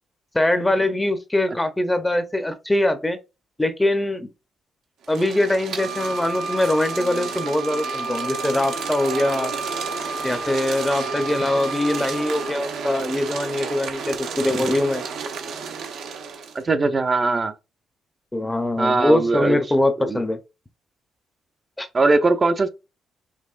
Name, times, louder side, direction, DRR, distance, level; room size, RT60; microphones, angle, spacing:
voice 1, 0.3-3.2 3.6-4.3 5.1-9.5 10.2-15.0 18.3-20.4 21.8-21.9, left 1 dB, 10° left, 0.7 m, -22 dB
sound 1, 5.0-16.6, right 5 dB, 80° right, 0.9 m, -32 dB
Wind instrument woodwind instrument, 5.8-12.5, right 3 dB, 65° right, 1.4 m, -32 dB
voice 2, 16.5-17.5 18.8-19.6 20.0-20.2 21.9-22.7, right 3 dB, 35° right, 0.6 m, -20 dB
5.5 x 2.9 x 2.5 m
cardioid pair, 90°, 0 cm